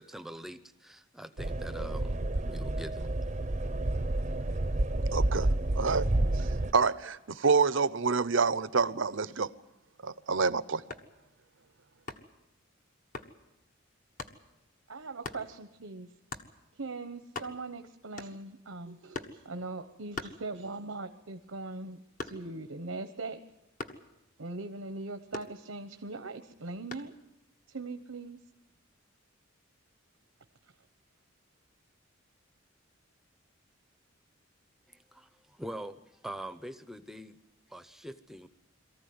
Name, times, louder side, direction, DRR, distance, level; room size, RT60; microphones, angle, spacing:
voice 1, 0.0-3.2 34.9-37.4 37.7-38.5, right 1 dB, ahead, 11 dB, 0.8 m, -44 dB
sound 1, 1.4-6.7, right 1 dB, 35° right, 0.7 m, -30 dB
voice 2, 5.1-5.5 5.8-6.1 6.3-9.5 10.0-10.8, right 4 dB, 70° right, 15 dB, 0.7 m, -27 dB
sound 2, 10.9-11.2 12.1-12.4 13.1-13.4 14.2-14.4 15.2-15.5 16.3-16.5 17.0-17.1 17.2-17.8 18.2-18.6 19.1-19.5 20.1-20.9 21.3-22.7 23.8-24.1 25.3-26.0 26.9-27.2, left 3 dB, 40° left, 1.4 m, -42 dB
voice 3, 14.9-16.1 16.7-23.4 24.4-27.1 27.7-28.4, right 3 dB, 85° right, 7 dB, 1.1 m, -40 dB
23.0 x 14.5 x 9.6 m, 0.92 s
head